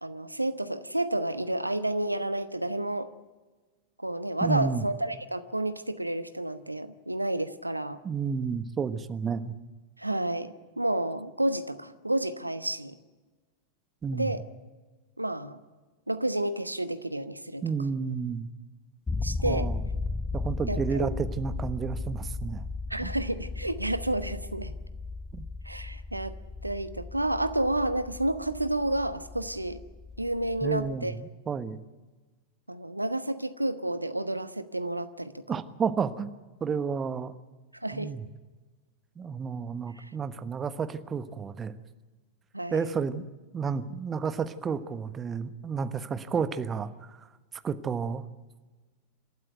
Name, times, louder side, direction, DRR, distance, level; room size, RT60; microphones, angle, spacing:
voice 1, 0.0-3.1 4.0-8.0 10.0-13.0 14.1-14.4 15.2-15.6 16.1-17.6 19.2-19.7 20.7-21.1 22.9-24.7 25.6-26.3 26.6-29.8 30.2-31.1 32.7-35.6 37.7-38.1 40.0-40.1 42.5-42.9, right 1 dB, 85° right, 12 dB, 1.1 m, -30 dB
voice 2, 4.4-4.8 8.0-9.5 14.0-14.3 17.6-18.5 19.4-19.8 20.3-22.7 23.0-23.1 25.3-25.4 30.6-31.8 35.5-36.3 36.6-37.3 37.9-38.2 39.2-41.7 42.7-43.2 43.5-47.2 47.6-48.2, right 6 dB, 20° right, 12 dB, 1.2 m, -31 dB
sound 1, 19.1-31.0, left 3 dB, 15° left, 0.8 m, -36 dB
27.0 x 12.5 x 9.2 m, 1.3 s
figure-of-eight pair, 90°, 0 cm